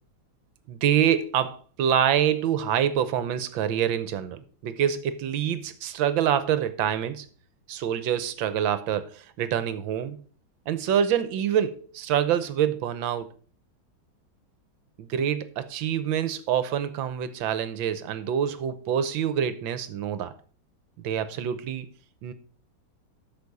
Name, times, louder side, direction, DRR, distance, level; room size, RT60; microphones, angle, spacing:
voice 1, 0.7-7.3 7.7-10.2 10.7-13.3 15.0-20.3 21.0-21.9 22.2-22.3, right 9 dB, 75° right, 1.5 m, -26 dB
8.3 x 6.4 x 5.3 m
omnidirectional pair, 2.3 m